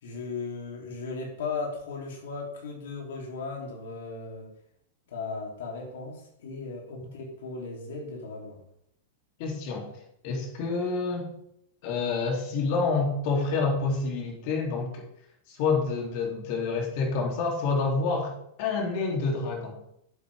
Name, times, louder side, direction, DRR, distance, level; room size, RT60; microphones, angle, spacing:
voice 1, 0.0-4.5 5.1-8.6, left 4 dB, 80° left, -1 dB, 3.5 m, -36 dB
voice 2, 9.4-9.9 10.2-11.3 11.8-15.0 15.5-18.3 18.6-19.7, left 4 dB, 55° left, 1 dB, 3.3 m, -28 dB
11.0 x 8.3 x 3.7 m, 0.76 s
hypercardioid pair, 125°, 0 cm